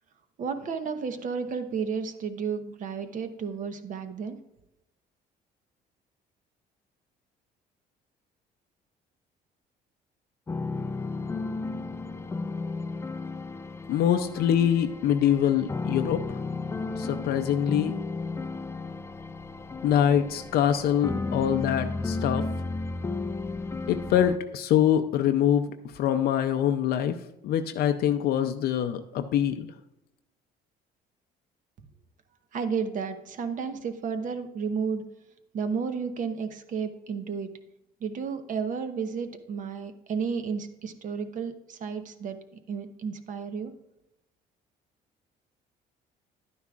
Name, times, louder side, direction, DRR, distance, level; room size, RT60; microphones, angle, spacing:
voice 1, 0.4-4.4 32.5-35.0 35.5-37.5 38.0-42.4 42.7-43.7, right 6 dB, 50° right, 9 dB, 0.9 m, -32 dB
sound 1, 10.5-24.4, left 3 dB, 15° left, 0.4 m, -33 dB
voice 2, 13.9-16.4 16.9-18.0 19.8-22.4 23.9-27.2 27.4-29.7, left 9 dB, 70° left, 7 dB, 0.5 m, -24 dB
10.5 x 9.4 x 2.4 m, 0.90 s
cardioid pair, 110°, 17 cm